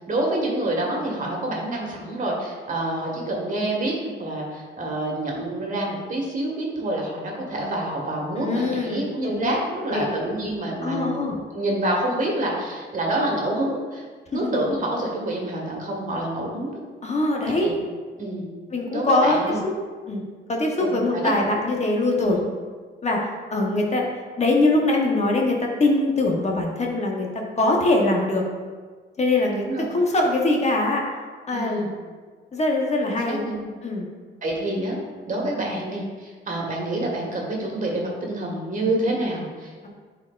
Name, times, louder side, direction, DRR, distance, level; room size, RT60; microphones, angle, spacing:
voice 1, 0.1-11.2 11.5-14.0 14.3-16.8 17.4-17.8 18.2-18.5 18.9-19.6 20.8-21.5 22.2-22.5 29.5-29.9 31.5-31.9 33.1-33.6 34.4-35.0 35.3-39.9, right 1 dB, 40° right, -1 dB, 1.8 m, -27 dB
voice 2, 8.4-9.5 9.9-10.1 10.8-11.3 14.3-14.4 17.0-17.7 18.7-19.4 19.6-19.7 20.1-20.2 20.5-22.4 23.0-23.2 23.5-24.1 24.4-28.5 29.2-29.6 29.9-31.0 31.5-31.9 32.5-33.4 33.8-34.1 39.8-39.9, left 2 dB, 35° left, 0 dB, 1.1 m, -22 dB
10.0 x 4.5 x 2.5 m, 1.5 s
cardioid pair, 90°, 20 cm